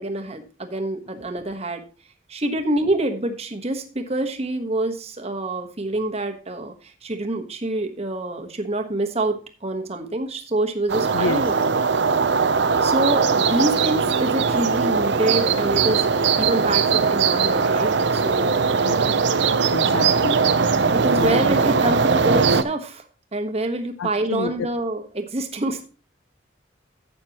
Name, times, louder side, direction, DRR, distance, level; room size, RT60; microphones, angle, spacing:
voice 1, 0.0-1.8 2.3-11.6 12.8-16.1 16.4-19.0 20.9-23.0 23.3-25.9, right 1 dB, 30° right, 6 dB, 1.2 m, -26 dB
sound 1, 10.9-22.6, right 5 dB, 60° right, 0.6 m, -20 dB
voice 2, 11.1-11.4 18.8-18.9 19.7-20.4 21.2-21.6 24.0-24.7, left 4 dB, 85° left, 12 dB, 0.5 m, -28 dB
12.0 x 8.5 x 2.9 m, 0.35 s
head